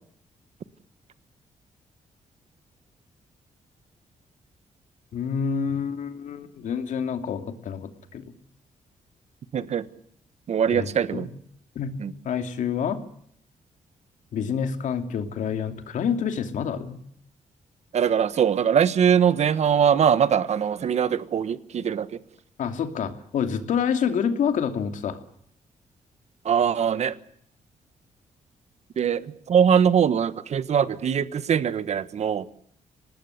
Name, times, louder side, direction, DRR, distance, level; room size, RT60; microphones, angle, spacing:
voice 1, 5.1-8.3 10.7-11.3 11.7-12.0 12.2-13.0 14.3-17.0 22.6-25.2, left 7 dB, 80° left, 7 dB, 2.7 m, -28 dB
voice 2, 9.5-9.8 10.5-11.3 12.0-12.1 17.9-22.1 26.4-27.1 29.0-29.2 29.5-32.5, right 8 dB, 60° right, 14 dB, 1.4 m, -22 dB
25.0 x 19.5 x 8.3 m, 0.66 s
cardioid pair, 115°, 13 cm